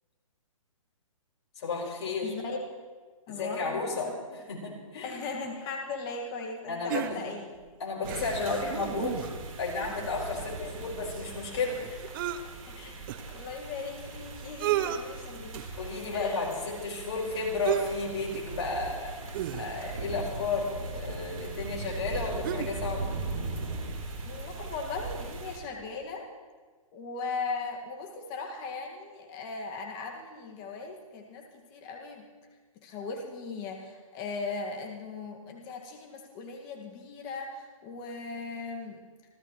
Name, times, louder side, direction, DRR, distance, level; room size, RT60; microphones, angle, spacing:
voice 1, 1.6-2.3 3.3-5.1 6.7-7.3 7.8-9.2 9.6-12.0 12.7-12.9 15.8-23.0, left 3 dB, 50° left, -2 dB, 5.3 m, -33 dB
voice 2, 2.2-2.6 3.3-4.1 5.0-7.5 10.3-10.8 12.7-12.9 13.3-15.6 16.1-16.4 24.3-26.3 26.9-31.5 31.7-32.3 32.8-39.0, left 4 dB, 25° left, 1 dB, 2.1 m, -38 dB
sound 1, 6.9-7.6 8.0-9.5 9.8-9.9 10.2-12.4 13.1-13.2 14.1-14.2 14.4-15.0 15.5-15.8 17.6-18.0 18.3-18.5 19.3-20.0 21.1-21.2 21.8-22.8 23.1-23.2, right 11 dB, 40° right, 0.9 m, -34 dB
sound 2, 8.0-25.6, right 3 dB, 70° right, 4.1 m, -39 dB
28.0 x 13.0 x 3.2 m, 1.4 s
hypercardioid pair, 135°, 18 cm